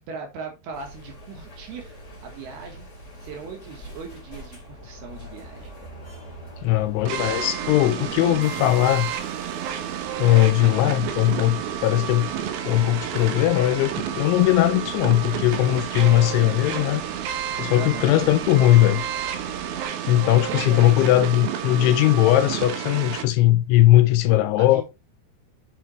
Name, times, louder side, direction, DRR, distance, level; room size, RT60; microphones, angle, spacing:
voice 1, 0.1-1.9 2.2-2.9 3.2-5.7 17.7-18.3 20.5-21.0 24.6-24.8, right 4 dB, 65° right, 2.9 m, -38 dB
sound 1, 0.7-19.8, equal, 25° left, 1.7 m, -44 dB
voice 2, 6.6-9.1 10.2-12.3 12.7-17.0 17.6-19.0 20.1-24.8, left 15 dB, 85° left, 2.9 m, -19 dB
sound 2, 7.1-23.2, right 9 dB, 85° right, 2.1 m, -30 dB
8.5 x 6.0 x 3.2 m
omnidirectional pair, 5.6 m